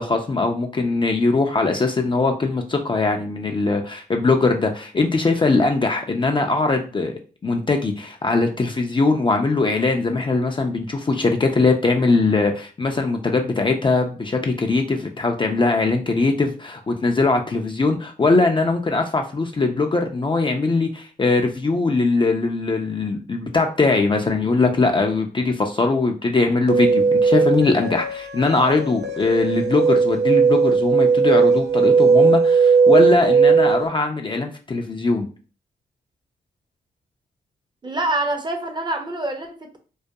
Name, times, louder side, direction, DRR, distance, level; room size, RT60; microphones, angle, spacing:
voice 1, 0.0-7.2 7.4-35.3, left 3 dB, 25° left, 3 dB, 0.4 m, -21 dB
sound 1, 26.7-33.8, right 5 dB, 70° right, 0.4 m, -17 dB
voice 2, 37.8-39.8, right 2 dB, 25° right, 4 dB, 0.6 m, -26 dB
2.3 x 2.1 x 2.7 m, 0.38 s
supercardioid pair, 45°, 18 cm